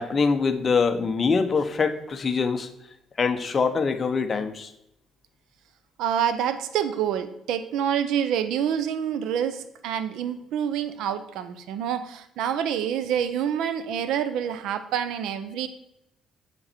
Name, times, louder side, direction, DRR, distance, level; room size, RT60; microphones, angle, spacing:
voice 1, 0.0-2.7 3.2-4.7, left 5 dB, 35° left, 1.0 m, -24 dB
voice 2, 6.0-15.7, right 9 dB, 85° right, 0.8 m, -27 dB
8.0 x 7.2 x 4.5 m
cardioid pair, 100°, 0 cm